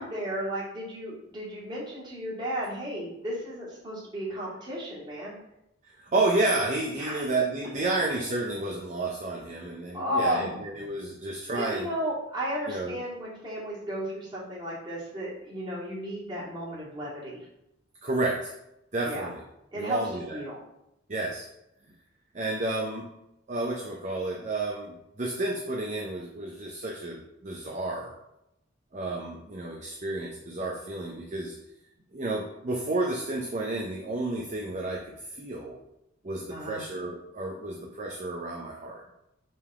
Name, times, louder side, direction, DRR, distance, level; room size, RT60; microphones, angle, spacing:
voice 1, 0.0-5.4 7.0-7.3 9.9-10.6 11.5-17.4 19.0-19.3 19.7-20.6 36.5-36.8, equal, 25° right, -8 dB, 2.3 m, -33 dB
voice 2, 5.9-11.9 12.7-13.0 18.0-18.5 18.9-19.4 19.7-20.4 21.1-21.5 22.3-23.1 23.5-28.1 28.9-31.5 32.1-35.0 35.3-35.7 36.2-39.0, right 2 dB, 40° right, -1 dB, 0.7 m, -31 dB
5.3 x 3.7 x 4.8 m, 0.85 s
head